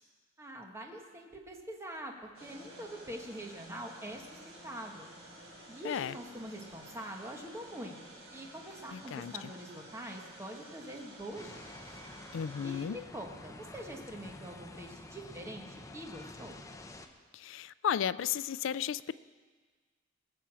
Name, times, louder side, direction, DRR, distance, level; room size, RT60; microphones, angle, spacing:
voice 1, 0.4-5.1 5.7-8.0 8.3-11.6 12.6-16.6, right 1 dB, 15° right, 1 dB, 1.5 m, -44 dB
sound 1, 2.3-12.8, right 1 dB, 80° right, 4.0 m, -52 dB
voice 2, 5.8-6.1 8.9-9.5 12.3-13.0 17.3-19.1, left 8 dB, 70° left, 16 dB, 0.4 m, -34 dB
sound 2, 11.3-17.1, left 2 dB, 15° left, 0.8 m, -49 dB
19.0 x 6.9 x 7.5 m, 1.5 s
head